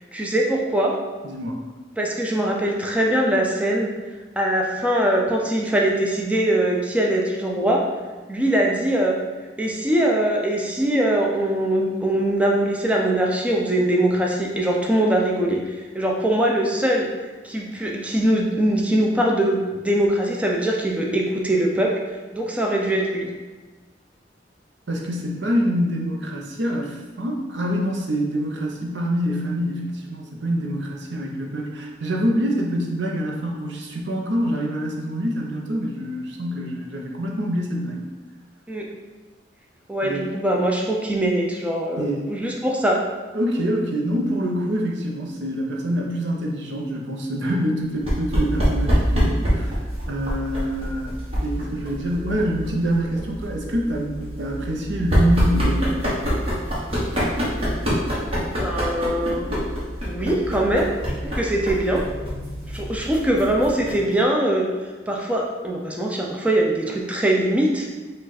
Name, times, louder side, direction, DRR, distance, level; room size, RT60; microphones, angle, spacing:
voice 1, 0.1-0.9 2.0-3.9 4.4-7.8 8.3-9.1 9.6-17.1 17.4-21.9 22.3-23.3 38.7-38.9 39.9-43.0 58.6-59.5 60.1-60.9 61.3-62.0 62.7-64.7 65.1-67.9, right 1 dB, 5° right, -1 dB, 0.4 m, -22 dB
voice 2, 1.2-1.6 24.9-38.0 40.0-40.3 42.0-42.3 43.3-51.1 51.4-56.4, equal, 75° right, -1 dB, 0.8 m, -26 dB
sound 1, 48.0-64.1, equal, 35° right, 1.2 m, -25 dB
5.0 x 2.4 x 4.0 m, 1.3 s
head